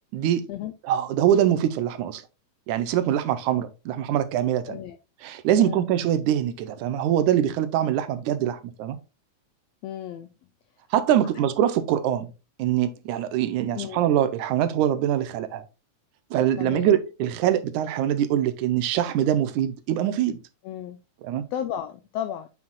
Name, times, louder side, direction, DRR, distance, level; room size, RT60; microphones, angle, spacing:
voice 1, 0.1-0.4 0.8-2.2 2.7-4.8 5.2-9.0 10.9-12.3 12.6-15.7 16.3-20.4 21.2-21.5, right 11 dB, 85° right, 2.1 m, -23 dB
voice 2, 4.7-5.0 5.6-5.9 9.8-10.3 13.7-14.0 16.6-17.0 20.6-21.0 21.5-22.5, left 10 dB, 85° left, 1.4 m, -33 dB
7.3 x 6.0 x 2.3 m
omnidirectional pair, 3.5 m